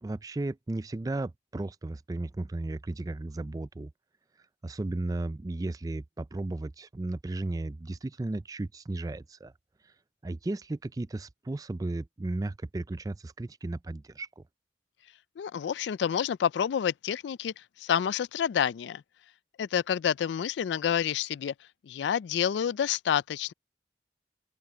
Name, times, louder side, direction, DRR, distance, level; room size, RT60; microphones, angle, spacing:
voice 1, 0.0-3.9 4.6-9.5 9.8-9.9 10.2-14.4, right 2 dB, 20° right, 0.3 m, -35 dB
voice 2, 15.4-19.0 19.6-21.5 21.8-23.5, left 8 dB, 85° left, 0.3 m, -28 dB
open air
head